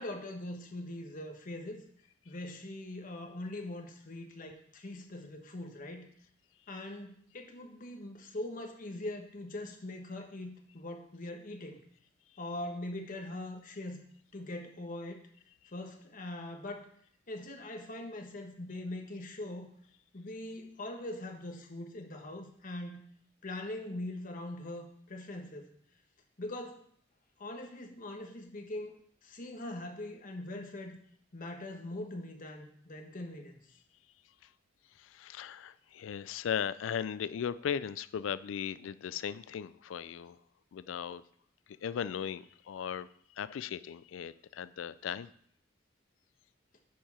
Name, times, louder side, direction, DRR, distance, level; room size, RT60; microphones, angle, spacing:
voice 1, 0.0-1.8 2.2-6.1 6.7-11.8 12.4-14.0 14.3-15.2 15.7-16.9 17.3-19.7 20.1-23.0 23.4-25.7 26.4-26.8 27.4-28.9 29.2-31.0 31.3-33.6, left 1 dB, 45° left, 4 dB, 1.1 m, -42 dB
voice 2, 35.0-40.4 40.7-41.2 41.8-43.1 43.4-45.3, left 8 dB, 75° left, 16 dB, 0.3 m, -37 dB
10.0 x 4.7 x 4.4 m, 0.63 s
head